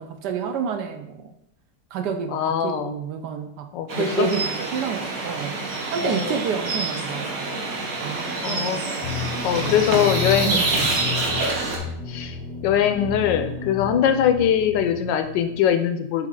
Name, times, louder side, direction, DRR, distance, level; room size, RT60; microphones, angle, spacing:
voice 1, 0.0-1.3 1.9-3.7 4.0-5.6 5.9-9.0 9.5-10.0 10.4-10.8 13.6-14.1, right 6 dB, 70° right, 7 dB, 1.1 m, -30 dB
voice 2, 2.3-2.9 3.7-4.3 6.0-6.3 8.4-8.8 9.4-10.6 12.1-12.4 12.6-16.3, left 9 dB, 80° left, 8 dB, 1.2 m, -22 dB
sound 1, 3.9-11.8, right 3 dB, 55° right, 1.4 m, -27 dB
sound 2, 9.0-15.6, left 7 dB, 55° left, 0.7 m, -32 dB
7.4 x 3.4 x 3.7 m, 0.77 s
omnidirectional pair, 2.0 m